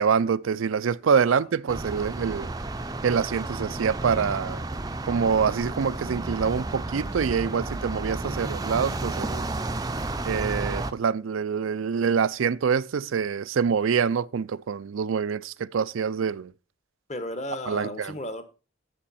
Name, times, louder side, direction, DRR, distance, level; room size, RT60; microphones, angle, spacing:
voice 1, 0.0-2.5 3.0-4.6 5.0-9.6 10.3-16.5 17.7-18.1, right 6 dB, 70° right, 0.4 m, -25 dB
voice 2, 1.1-1.5 17.1-18.4, left 1 dB, 35° left, 1.1 m, -34 dB
sound 1, 1.7-10.9, right 2 dB, 20° right, 0.5 m, -32 dB
11.5 x 7.4 x 4.2 m
head